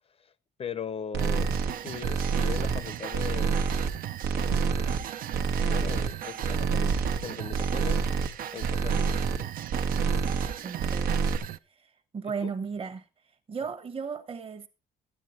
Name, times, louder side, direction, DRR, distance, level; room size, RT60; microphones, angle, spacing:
voice 1, 0.6-3.6 4.2-4.9 5.6-8.1 8.5-9.5 12.4-12.5, left 7 dB, 35° left, 0.6 m, -39 dB
sound 1, 1.1-1.7 2.0-2.9 3.1-4.0 4.2-5.1 5.3-6.1 6.4-7.2 7.5-8.3 8.6-9.4 9.7-10.5 10.8-11.4, right 5 dB, 80° right, 1.3 m, -27 dB
sound 2, 1.2-11.6, right 11 dB, 55° right, 0.6 m, -38 dB
voice 2, 10.6-11.3 11.7-11.9 12.1-13.1 13.5-14.7, right 6 dB, 35° right, 1.2 m, -35 dB
13.0 x 9.4 x 4.4 m
cardioid pair, 110°, 17 cm